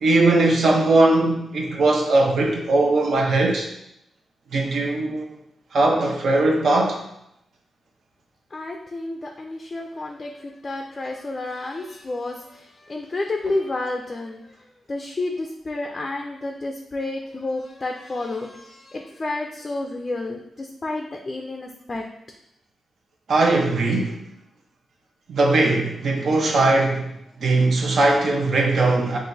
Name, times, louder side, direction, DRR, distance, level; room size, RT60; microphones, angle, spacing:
voice 1, 0.0-3.7 4.5-5.3 5.7-7.0 23.3-24.2 25.3-27.1 27.4-29.2, right 2 dB, 65° right, 1 dB, 0.8 m, -19 dB
voice 2, 8.5-14.4 14.9-22.0, left 2 dB, 30° left, 2 dB, 0.4 m, -30 dB
5.7 x 2.5 x 2.6 m, 0.80 s
cardioid pair, 110°, 0 cm